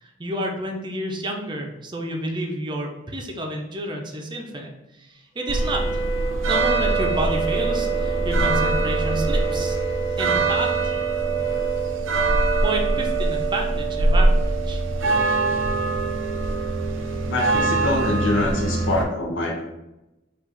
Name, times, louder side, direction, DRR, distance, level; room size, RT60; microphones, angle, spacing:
voice 1, 0.0-6.0 6.4-9.8 10.2-10.7 12.6-14.8, right 1 dB, 25° right, 1 dB, 0.6 m, -29 dB
Wind instrument woodwind instrument, 5.4-12.0, right 4 dB, 45° left, 1.2 m, -31 dB
sound 1, 5.5-19.0, right 3 dB, 90° right, 0.6 m, -23 dB
voice 2, 17.3-19.6, left 2 dB, 75° left, 0 dB, 0.7 m, -25 dB
4.7 x 2.5 x 3.9 m, 0.98 s
head